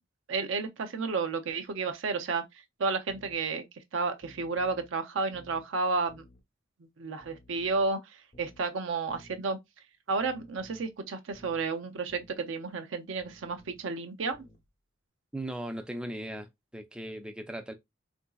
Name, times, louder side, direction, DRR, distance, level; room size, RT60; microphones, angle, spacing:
voice 1, 0.3-2.4 2.8-3.7 3.9-6.2 6.8-8.0 8.4-9.6 10.1-14.5, right 4 dB, 70° right, 0.5 m, -31 dB
sound 1, 3.1-3.4 4.2-4.9 5.3-5.7 6.1-6.4 7.2-7.9 8.3-8.7 9.1-9.4 10.2-10.9 11.3-11.7 12.1-12.4 13.2-13.9 14.3-14.7, left 1 dB, 45° left, 0.7 m, -56 dB
voice 2, 15.3-16.5 16.7-17.7, right 1 dB, 5° right, 0.4 m, -37 dB
3.7 x 2.6 x 2.3 m
head